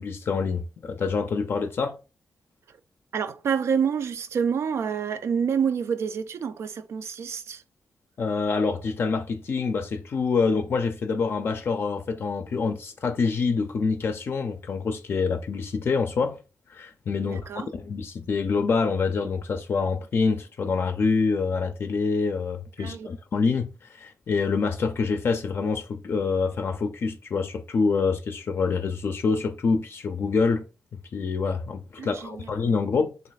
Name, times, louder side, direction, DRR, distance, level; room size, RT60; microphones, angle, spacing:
voice 1, 0.0-2.0 8.2-16.4 16.7-30.6 31.1-33.1, left 4 dB, 55° left, 0.4 m, -26 dB
voice 2, 3.1-7.6 17.2-17.7 22.8-23.1 32.0-32.6, right 7 dB, 65° right, 0.4 m, -28 dB
3.2 x 2.9 x 4.0 m
wide cardioid pair, 125°, 5 cm